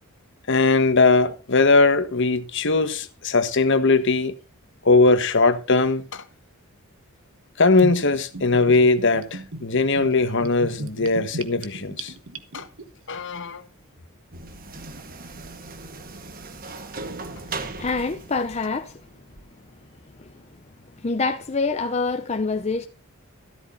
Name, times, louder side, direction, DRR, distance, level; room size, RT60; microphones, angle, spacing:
voice 1, 0.5-4.3 4.8-6.2 7.6-12.1 12.5-12.7 13.1-13.6, left 3 dB, 55° left, 1.2 m, -20 dB
Gurgling / Bathtub (filling or washing), 7.8-12.8, right 2 dB, 60° right, 1.3 m, -35 dB
sound 1, 14.3-19.5, right 3 dB, 40° right, 1.4 m, -38 dB
voice 2, 17.8-19.0 21.0-22.9, left 4 dB, 30° left, 0.6 m, -25 dB
14.0 x 12.5 x 2.7 m
head